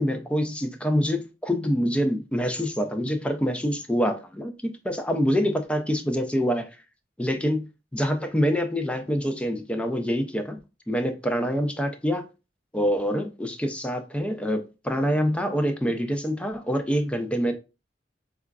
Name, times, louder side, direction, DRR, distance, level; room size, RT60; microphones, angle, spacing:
voice 1, 0.0-6.7 7.2-7.7 7.9-10.6 10.9-12.2 12.7-17.5, equal, 5° left, 0.4 m, -26 dB
4.8 x 2.3 x 2.2 m
head